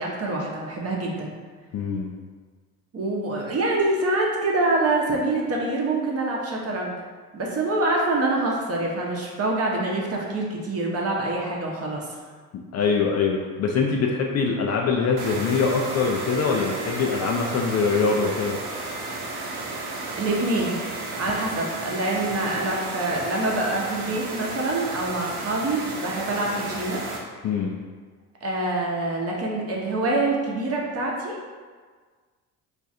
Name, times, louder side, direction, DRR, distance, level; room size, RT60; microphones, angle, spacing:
voice 1, 0.0-1.3 2.9-6.9 7.3-12.2 19.7-20.8 21.2-27.0 28.4-31.4, right 2 dB, 35° right, -2 dB, 0.8 m, -25 dB
voice 2, 1.7-2.1 12.7-18.6 27.4-27.7, left 5 dB, 40° left, 0 dB, 0.4 m, -23 dB
sound 1, 15.2-27.2, right 2 dB, 80° right, 0.7 m, -33 dB
2.5 x 2.3 x 4.1 m, 1.5 s
hypercardioid pair, 60°, 43 cm